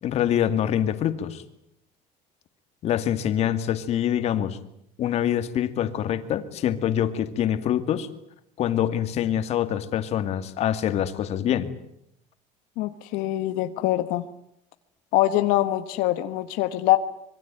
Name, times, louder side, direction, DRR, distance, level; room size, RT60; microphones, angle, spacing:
voice 1, 0.0-1.4 2.8-4.6 5.0-8.1 8.6-11.7, left 10 dB, 50° left, 10 dB, 2.4 m, -25 dB
voice 2, 12.8-14.2 15.1-17.0, left 15 dB, 90° left, 9 dB, 1.5 m, -23 dB
26.0 x 22.5 x 9.1 m, 0.75 s
cardioid pair, 155°, 14 cm